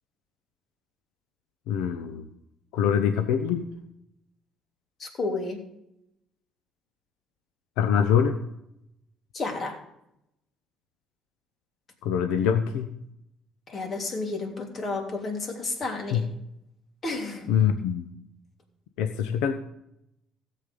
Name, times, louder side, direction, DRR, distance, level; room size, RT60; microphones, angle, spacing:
voice 1, 1.7-2.3 2.7-3.7 7.8-8.4 12.0-12.9 16.1-16.2 17.5-18.1 19.0-19.5, left 8 dB, 80° left, 8 dB, 0.9 m, -24 dB
voice 2, 5.0-5.6 9.3-9.8 13.7-16.3 17.0-17.6, left 3 dB, 45° left, 2 dB, 3.2 m, -31 dB
16.5 x 7.5 x 3.9 m, 0.81 s
hypercardioid pair, 60°, 0 cm